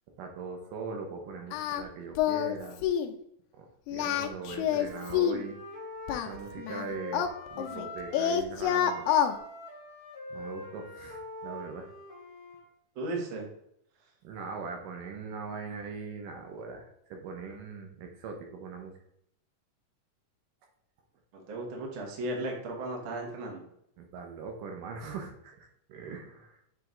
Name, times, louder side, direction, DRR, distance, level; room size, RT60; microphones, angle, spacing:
voice 1, 0.2-2.8 3.5-5.6 6.1-9.1 10.3-11.9 14.2-18.9 24.0-26.7, right 4 dB, 75° right, 2 dB, 2.3 m, -41 dB
Singing, 1.5-1.8 2.2-2.6 2.8-3.1 3.9-5.5 6.1-7.9 8.1-9.3, left 10 dB, 80° left, 1.8 m, -27 dB
Wind instrument woodwind instrument, 4.7-8.4 8.7-12.6, left 1 dB, 10° right, 1.9 m, -44 dB
voice 2, 12.9-13.5 21.5-23.6, right 2 dB, 50° right, -1 dB, 1.6 m, -35 dB
7.7 x 3.3 x 3.8 m, 0.74 s
omnidirectional pair, 3.9 m